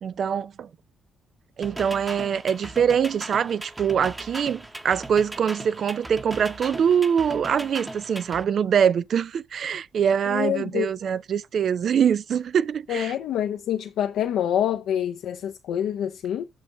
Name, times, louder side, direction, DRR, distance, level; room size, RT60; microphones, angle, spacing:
voice 1, 0.0-0.7 1.6-13.1, right 7 dB, 60° right, 0.4 m, -24 dB
sound 1, 1.6-8.4, right 1 dB, 15° right, 1.0 m, -38 dB
voice 2, 10.3-10.9 12.9-16.5, left 10 dB, 80° left, 0.6 m, -26 dB
6.4 x 6.4 x 3.7 m
cardioid pair, 85°, 0 cm